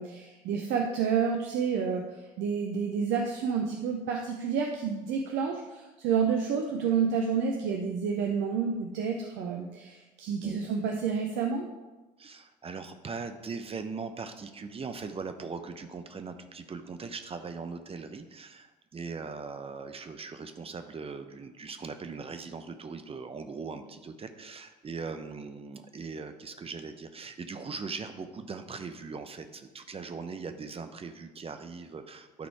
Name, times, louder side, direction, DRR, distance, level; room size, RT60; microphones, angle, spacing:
voice 1, 0.0-11.7, right 6 dB, 60° right, 2 dB, 0.8 m, -29 dB
voice 2, 12.2-32.5, right 4 dB, 30° right, 8 dB, 0.8 m, -40 dB
11.5 x 4.2 x 4.7 m, 1.2 s
figure-of-eight pair, 50°, 21 cm